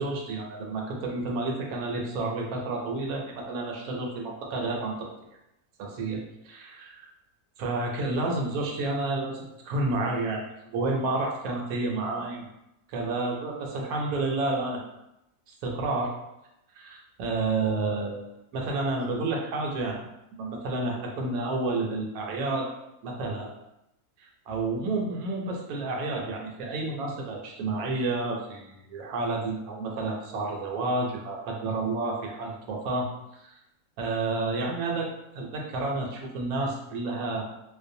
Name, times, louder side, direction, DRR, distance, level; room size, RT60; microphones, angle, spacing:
voice 1, 0.0-4.9 5.8-7.1 7.6-10.4 10.7-12.5 12.9-14.8 15.6-16.1 16.8-18.2 18.5-20.0 20.3-22.7 23.0-23.5 24.2-33.1 33.4-33.6 34.0-35.1 35.3-37.4, right 2 dB, 75° right, 0 dB, 1.0 m, -30 dB
2.5 x 2.1 x 2.6 m, 0.88 s
omnidirectional pair, 1.6 m